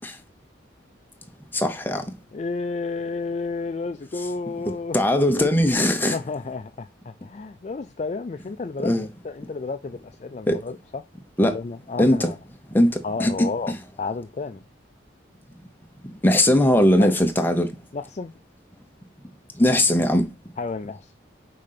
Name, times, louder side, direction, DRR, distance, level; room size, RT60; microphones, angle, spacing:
voice 1, 1.5-2.1 4.9-6.2 8.8-9.1 10.5-10.6 11.4-11.6 12.0-12.3 12.7-13.8 16.0-17.7 19.6-20.3, left 1 dB, 10° left, 0.8 m, -20 dB
voice 2, 2.3-5.0 5.6-5.7 6.0-8.9 9.2-11.0 11.4-12.4 13.0-14.6 17.0-17.1 17.9-18.3 20.6-21.1, left 4 dB, 35° left, 0.3 m, -31 dB
5.1 x 3.8 x 5.8 m
head